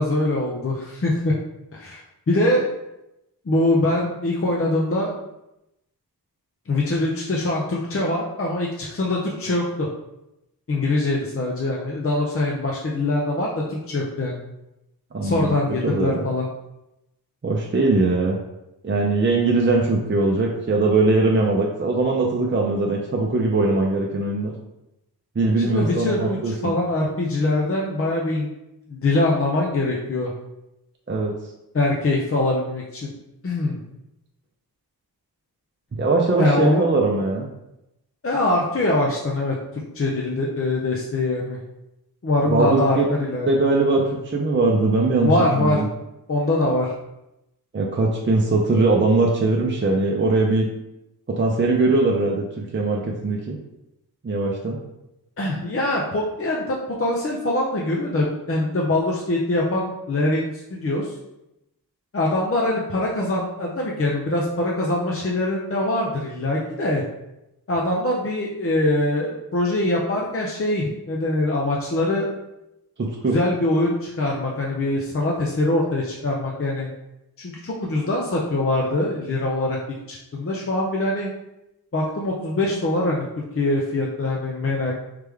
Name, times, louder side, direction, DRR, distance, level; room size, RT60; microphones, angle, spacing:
voice 1, 0.0-1.4 1.7-2.7 3.4-5.1 6.7-9.9 10.7-14.3 15.2-16.5 25.7-28.5 28.9-30.3 31.7-33.1 33.4-33.8 36.4-36.8 38.2-41.6 42.2-43.5 45.2-45.8 46.3-46.9 55.4-61.1 62.1-67.0 67.7-72.3 73.2-76.9 77.4-79.8 80.1-81.3 81.9-84.9, left 2 dB, 35° left, -2 dB, 0.7 m, -23 dB
voice 2, 15.1-16.2 17.4-18.4 18.8-24.5 25.4-26.7 31.1-31.3 35.9-37.5 42.5-43.1 43.5-45.3 45.6-45.8 47.7-50.7 51.3-53.6 54.2-54.8 73.0-73.3, right 3 dB, 30° right, -1 dB, 0.6 m, -21 dB
3.3 x 3.2 x 3.5 m, 0.90 s
cardioid pair, 55°, 39 cm